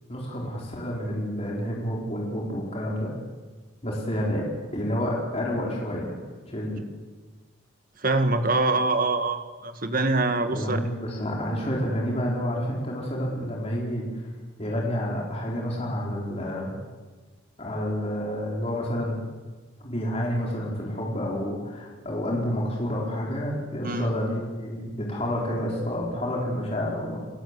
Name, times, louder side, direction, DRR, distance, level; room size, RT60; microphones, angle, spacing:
voice 1, 0.1-3.1 3.8-6.2 6.5-6.8 10.4-14.2 14.6-16.7 17.6-19.2 19.8-27.2, equal, 30° left, -3 dB, 4.5 m, -29 dB
voice 2, 8.0-10.8 23.8-24.1, right 2 dB, 45° right, 8 dB, 1.7 m, -24 dB
30.0 x 16.0 x 8.3 m, 1.3 s
head